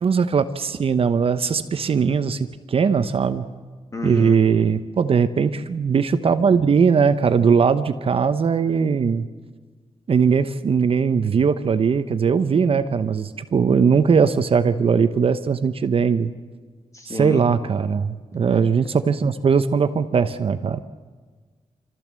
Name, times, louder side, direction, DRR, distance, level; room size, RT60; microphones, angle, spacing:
voice 1, 0.0-2.4 2.7-3.4 4.0-9.2 10.1-16.3 17.1-20.8, right 6 dB, 55° right, 10 dB, 0.9 m, -19 dB
voice 2, 3.9-4.4 16.9-17.5, left 2 dB, 30° left, 4 dB, 2.5 m, -30 dB
26.0 x 14.0 x 7.5 m, 1.5 s
wide cardioid pair, 105°, 12 cm